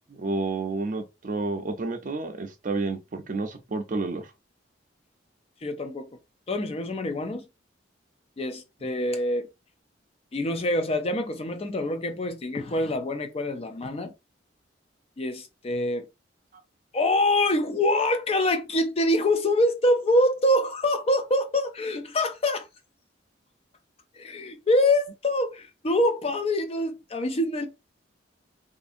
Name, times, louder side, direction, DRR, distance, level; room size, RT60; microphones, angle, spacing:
voice 1, 0.1-4.2, right 3 dB, 40° right, 0.5 m, -30 dB
voice 2, 5.6-6.1 6.5-7.4 8.4-9.5 10.3-14.1 15.2-16.1 16.9-22.7 24.2-27.7, left 1 dB, 30° left, 0.4 m, -25 dB
2.6 x 2.5 x 2.5 m
head